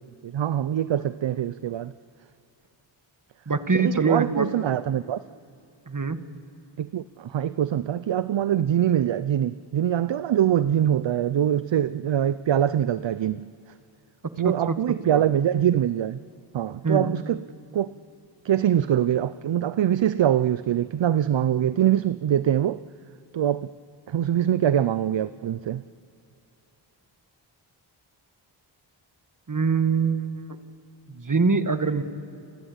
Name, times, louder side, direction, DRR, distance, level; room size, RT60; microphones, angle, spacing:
voice 1, 0.2-1.9 3.7-5.2 6.8-13.5 14.4-16.2 16.5-17.4 17.7-17.9 18.4-22.8 23.3-23.7 24.1-25.8, right 10 dB, 65° right, 0.6 m, -23 dB
voice 2, 3.4-4.5 5.9-6.2 14.4-14.7 15.1-15.2 16.8-17.1 29.5-30.6 31.1-32.0, right 4 dB, 40° right, 1.8 m, -24 dB
29.0 x 25.5 x 8.1 m
cardioid pair, 50°, 49 cm